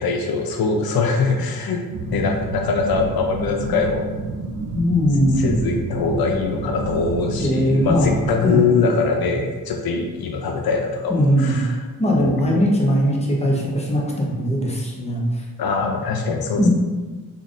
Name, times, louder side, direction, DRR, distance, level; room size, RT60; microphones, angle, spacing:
voice 1, 0.0-1.8 2.1-4.1 5.4-11.8 12.2-12.6 15.6-16.7, left 4 dB, 75° left, 3 dB, 0.5 m, -22 dB
sound 1, 1.9-8.4, right 2 dB, 75° right, 0.5 m, -29 dB
voice 2, 4.7-5.5 7.4-8.7 11.1-11.5 12.0-15.4 16.6-16.7, equal, 20° left, -3 dB, 0.9 m, -20 dB
3.8 x 3.5 x 2.4 m, 1.3 s
cardioid pair, 70°, 36 cm